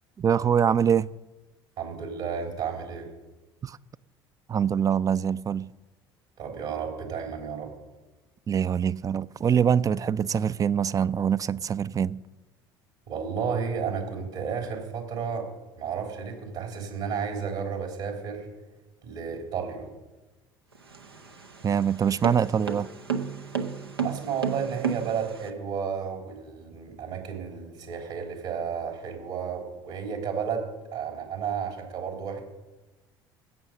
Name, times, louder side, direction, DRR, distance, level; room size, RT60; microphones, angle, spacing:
voice 1, 0.2-1.1 3.6-3.8 4.5-5.7 8.5-12.2 21.6-22.9, right 8 dB, 30° right, 0.4 m, -24 dB
voice 2, 1.8-3.1 6.4-7.7 13.1-15.5 15.8-18.5 19.0-19.9 24.0-32.4, right 6 dB, 65° right, 3.4 m, -32 dB
sound 1, 20.7-25.5, right 6 dB, 90° right, 0.7 m, -32 dB
16.0 x 6.3 x 6.7 m
figure-of-eight pair, 60°, 12 cm